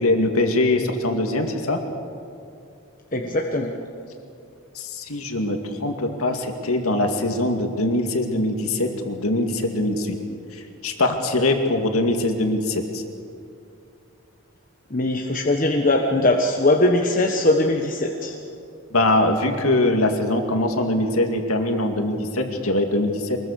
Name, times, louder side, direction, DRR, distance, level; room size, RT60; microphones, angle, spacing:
voice 1, 0.0-1.8 4.7-10.2 10.5-13.0 18.9-23.4, left 1 dB, 85° left, 4 dB, 2.3 m, -22 dB
voice 2, 3.1-3.7 14.9-18.4, left 2 dB, 35° left, 1 dB, 1.3 m, -20 dB
24.0 x 21.5 x 6.7 m, 2.6 s
head